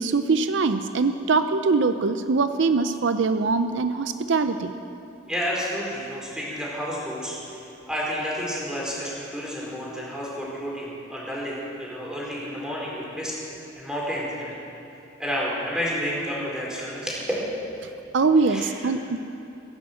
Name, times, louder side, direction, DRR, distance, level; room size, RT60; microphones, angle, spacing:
voice 1, 0.0-4.7 18.1-19.2, right 4 dB, 75° right, 10 dB, 0.6 m, -22 dB
voice 2, 5.3-7.6 7.9-13.3 13.8-14.6 15.2-17.2 18.5-18.9, equal, 5° right, -5 dB, 4.2 m, -30 dB
16.5 x 11.0 x 7.8 m, 2.8 s
head